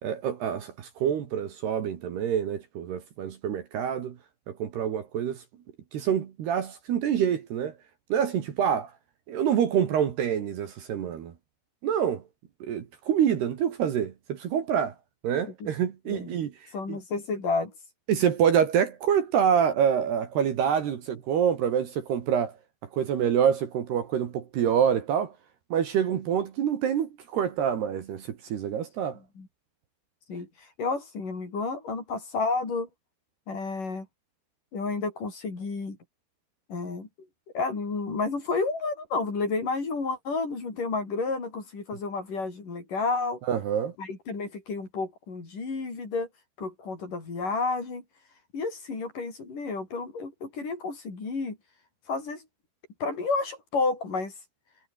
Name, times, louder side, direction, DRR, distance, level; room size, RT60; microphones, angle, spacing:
voice 1, 0.0-4.2 4.5-5.4 5.9-7.7 8.1-8.9 9.3-11.3 11.8-12.2 12.6-14.9 15.2-16.5 16.9-17.0 18.1-22.5 22.9-25.4 25.7-29.2 43.5-43.9, right 8 dB, 60° right, 3.8 m, -26 dB
voice 2, 16.7-17.7 29.4-29.5 30.3-30.5 30.8-32.9 33.5-34.1 34.7-36.0 36.7-37.1 37.5-43.4 44.0-46.3 46.6-48.0 48.5-51.6 52.1-52.4 53.0-54.3, left 4 dB, 40° left, 7.5 m, -31 dB
omnidirectional pair, 5.8 m